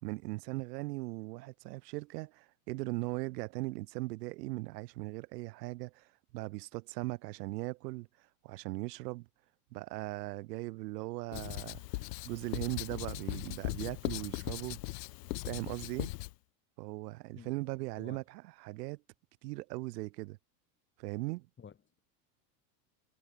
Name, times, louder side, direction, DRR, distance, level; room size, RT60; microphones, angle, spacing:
voice 1, 0.0-8.1 8.4-9.3 9.7-11.8 12.2-14.8 15.4-16.1 16.8-19.0 19.4-20.4 21.0-21.5, right 21 dB, 80° right, 1.4 m, -39 dB
Writing, 11.3-16.3, left 21 dB, 80° left, 1.1 m, -39 dB
voice 2, 21.6-22.0, left 7 dB, 25° left, 5.2 m, -51 dB
supercardioid pair, 125°, 48 cm